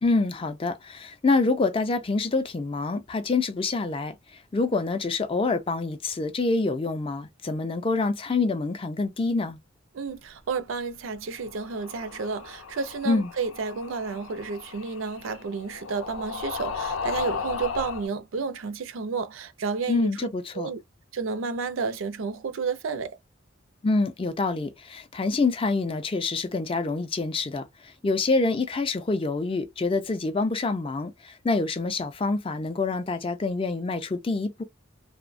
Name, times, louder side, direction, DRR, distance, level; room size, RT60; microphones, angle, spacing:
voice 1, 0.0-4.2 4.5-9.6 13.1-13.3 19.9-20.7 23.8-27.6 28.0-34.6, left 3 dB, 25° left, 0.3 m, -26 dB
voice 2, 9.9-20.1 20.5-20.8 21.1-23.2, right 5 dB, 80° right, 0.4 m, -31 dB
sound 1, 11.4-18.1, left 5 dB, 90° left, 0.5 m, -35 dB
2.6 x 2.1 x 2.4 m
head